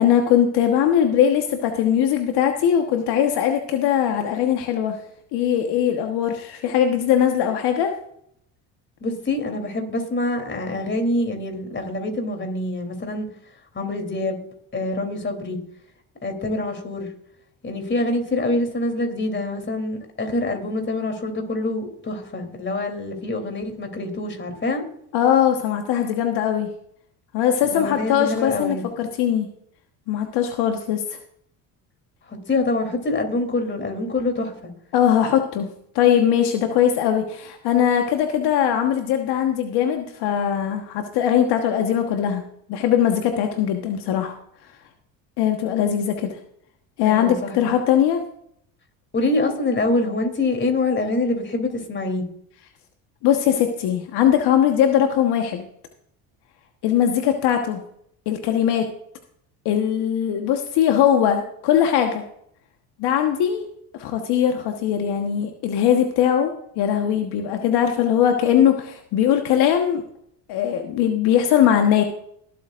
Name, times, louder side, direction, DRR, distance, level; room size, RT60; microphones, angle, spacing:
voice 1, 0.0-5.0 5.3-7.9 25.1-26.7 27.3-29.5 30.1-31.2 34.9-35.7 35.9-42.4 42.7-44.3 45.4-46.4 47.0-48.2 53.2-55.7 56.8-57.8 58.3-58.9 59.6-62.2 63.0-63.7 63.9-70.0 70.5-72.0, left 9 dB, 65° left, 4 dB, 1.4 m, -20 dB
voice 2, 9.0-13.3 13.7-14.4 14.7-15.6 16.2-17.1 17.6-24.9 27.6-28.8 32.3-34.7 47.0-47.5 49.1-52.2, left 2 dB, 25° left, 5 dB, 3.3 m, -25 dB
22.5 x 8.4 x 2.5 m, 0.69 s
supercardioid pair, 75°, 42 cm